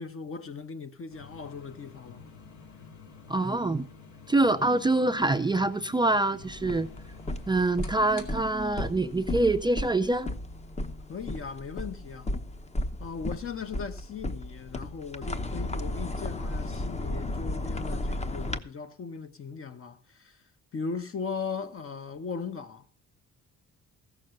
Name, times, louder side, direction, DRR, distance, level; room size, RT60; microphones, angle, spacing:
voice 1, 0.0-2.3 11.1-12.4 13.0-22.9, left 5 dB, 45° left, 1.3 m, -38 dB
sound 1, 1.1-17.1, left 5 dB, 70° left, 2.5 m, -52 dB
voice 2, 3.3-3.9 4.3-6.9 7.5-10.3, right 2 dB, 15° right, 0.5 m, -25 dB
sound 2, 6.4-18.6, left 1 dB, 20° left, 0.9 m, -34 dB
15.0 x 6.5 x 6.5 m
cardioid pair, 90°, 30 cm